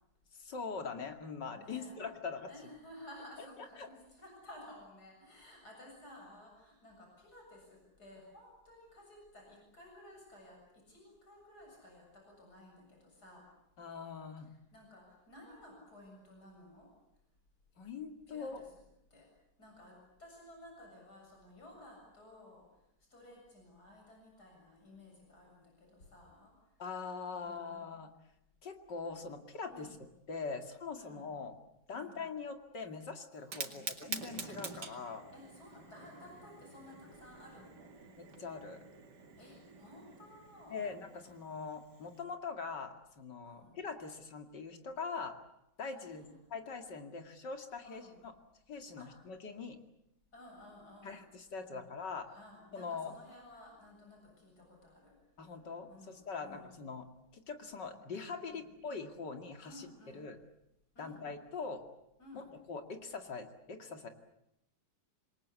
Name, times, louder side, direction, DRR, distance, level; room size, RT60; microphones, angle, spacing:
voice 1, 0.3-2.5 3.8-3.9 13.8-14.6 17.8-18.6 26.8-28.1 28.6-29.9 30.3-31.6 31.9-35.2 38.2-38.8 40.7-45.4 45.8-46.2 46.5-48.3 48.7-49.8 51.0-52.3 52.7-53.2 55.4-57.1 57.3-59.9 60.1-60.4 61.0-61.8 62.3-64.1, left 5 dB, 85° left, 6 dB, 3.0 m, -42 dB
voice 2, 1.5-2.0 2.5-13.4 14.4-16.9 18.3-18.7 19.1-19.3 19.6-22.6 23.1-27.0 27.3-27.9 29.6-30.1 31.0-31.4 31.9-32.3 33.6-33.9 35.3-37.9 39.4-40.9 43.4-43.8 46.0-46.4 47.8-48.2 49.0-49.1 50.3-51.2 51.6-51.9 52.2-55.2 55.6-56.7 58.4-58.7 59.6-60.2 60.9-61.3 62.2-62.5, left 1 dB, 65° left, 0 dB, 8.1 m, -55 dB
Fire, 33.4-42.2, right 4 dB, 70° right, 2.9 m, -48 dB
27.5 x 22.0 x 8.4 m, 0.84 s
omnidirectional pair, 1.8 m